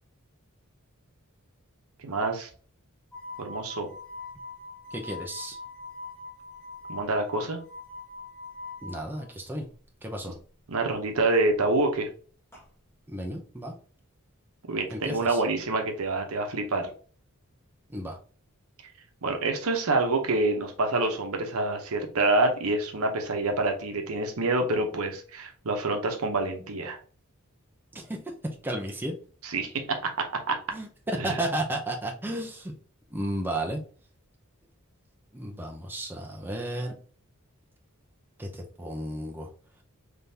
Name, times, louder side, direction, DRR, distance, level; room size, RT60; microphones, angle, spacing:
voice 1, 2.0-2.5 3.4-3.9 6.9-7.6 10.7-12.1 14.7-16.9 19.2-27.0 29.4-29.8 30.5-30.6 31.1-31.4, right 2 dB, 70° right, 4 dB, 0.8 m, -27 dB
sound 1, 3.1-9.3 12.5-12.6, left 3 dB, 10° left, 1.3 m, -42 dB
voice 2, 4.9-5.6 8.8-9.7 10.0-10.4 13.1-13.8 14.9-15.4 17.9-18.2 27.9-28.2 28.6-29.1 30.7-32.7 33.1-33.8 35.3-36.9 38.4-39.5, right 1 dB, 10° right, 1 dB, 0.6 m, -33 dB
3.7 x 3.4 x 2.7 m, 0.41 s
head